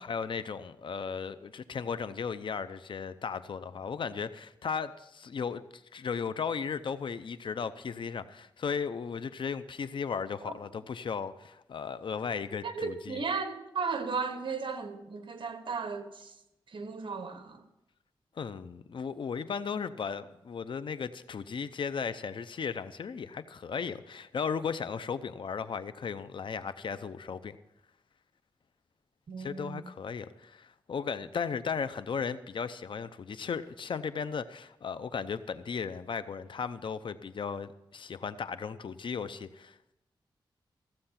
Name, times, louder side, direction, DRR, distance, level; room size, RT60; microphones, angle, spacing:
voice 1, 0.0-13.2 18.4-27.6 29.4-39.8, left 6 dB, 70° left, 13 dB, 0.6 m, -36 dB
voice 2, 12.6-16.3 16.7-17.6 29.3-29.9, right 5 dB, 70° right, 7 dB, 1.4 m, -35 dB
15.0 x 7.7 x 5.8 m, 0.88 s
wide cardioid pair, 90°, 9 cm